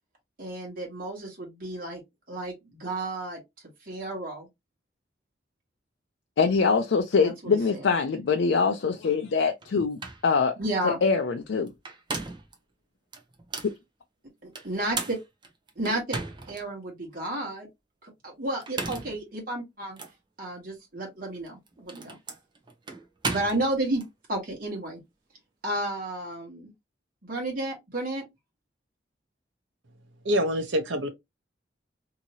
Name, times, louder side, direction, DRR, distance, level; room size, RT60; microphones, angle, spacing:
voice 1, 0.4-2.0 2.3-3.4 3.8-4.5 7.2-7.9 10.6-11.0 14.4-15.2 15.8-16.2 16.5-17.7 18.0-20.0 20.4-22.2 23.3-24.0 24.3-25.0 25.6-26.7 27.2-28.2, right 1 dB, 50° right, 1.4 m, -32 dB
voice 2, 6.4-10.5 10.8-11.7 13.6-13.7, left 5 dB, 70° left, 0.4 m, -24 dB
sound 1, 9.6-9.7 10.0-10.3 11.7-12.5 13.1-13.8 14.5-16.6 17.1-17.2 18.5-19.2 20.0-20.1 21.3-24.1, right 3 dB, 25° right, 0.7 m, -35 dB
voice 3, 30.2-31.1, equal, 80° right, 0.9 m, -25 dB
2.9 x 2.7 x 2.8 m
head